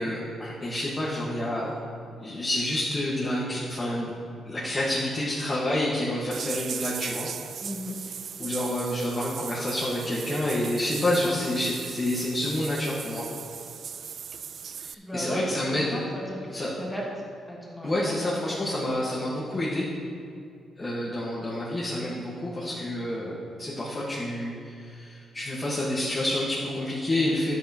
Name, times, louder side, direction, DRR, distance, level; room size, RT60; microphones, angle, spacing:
voice 1, 0.0-1.7 2.1-4.1 4.4-7.3 8.4-13.2 14.8-16.0 16.5-16.7 17.8-19.8 20.8-23.3 23.6-27.6, left 1 dB, 25° left, -6 dB, 1.5 m, -28 dB
sound 1, 6.3-14.9, right 7 dB, 55° right, 0.3 m, -38 dB
voice 2, 7.6-8.0 15.0-15.4 15.9-17.0 17.5-18.3, equal, 5° left, -4 dB, 2.0 m, -36 dB
10.5 x 9.3 x 3.0 m, 2.4 s
cardioid pair, 115°, 0 cm